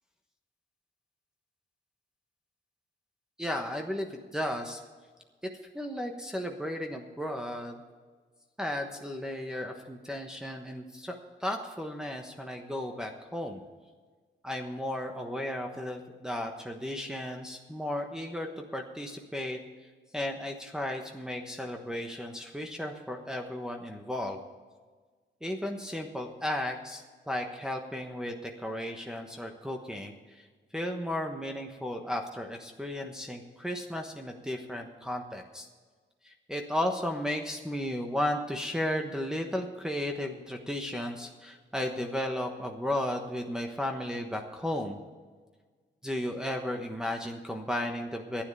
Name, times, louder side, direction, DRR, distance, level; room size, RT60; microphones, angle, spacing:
voice 1, 3.4-4.8 5.7-7.8 8.6-13.6 14.4-19.6 20.1-24.4 25.4-30.4 30.7-35.7 36.2-45.0 46.0-48.4, left 1 dB, 5° right, 1 dB, 1.2 m, -34 dB
11.5 x 10.0 x 6.9 m, 1.4 s
cardioid pair, 105°, 20 cm